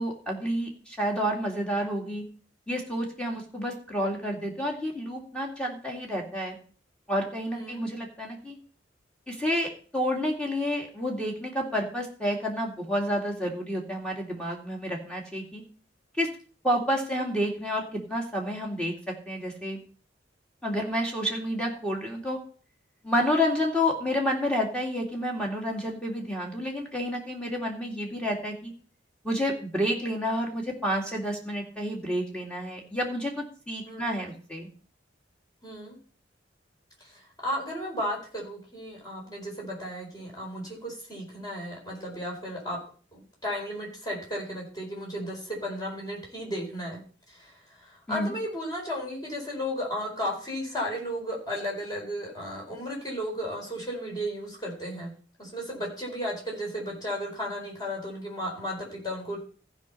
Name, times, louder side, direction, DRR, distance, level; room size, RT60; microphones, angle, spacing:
voice 1, 0.0-2.2 2.7-6.6 7.1-8.6 9.3-15.6 16.2-16.3 16.6-19.8 20.6-22.4 23.0-28.7 29.2-34.7 48.1-48.3, equal, 5° left, 0 dB, 2.3 m, -29 dB
voice 2, 33.9-34.3 35.6-36.0 37.0-42.8 43.1-47.0 47.3-55.1 55.4-59.4, equal, 20° left, -2 dB, 4.6 m, -34 dB
15.0 x 5.3 x 5.6 m, 0.42 s
head